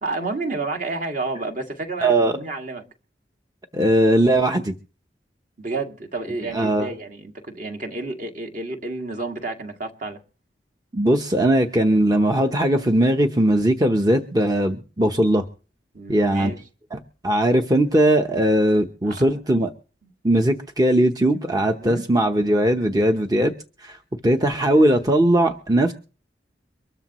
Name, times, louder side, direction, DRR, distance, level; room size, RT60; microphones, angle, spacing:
voice 1, 0.0-2.8 5.6-10.2 15.9-16.6 19.0-19.3 20.0-20.1 21.8-22.1, right 3 dB, 50° right, 2.0 m, -30 dB
voice 2, 2.0-2.4 3.7-4.7 6.5-6.9 10.9-15.4 16.1-16.5 16.9-19.7 20.2-23.5 23.8-24.0 24.2-25.9, right 1 dB, 20° right, 0.9 m, -19 dB
23.5 x 13.5 x 3.1 m
head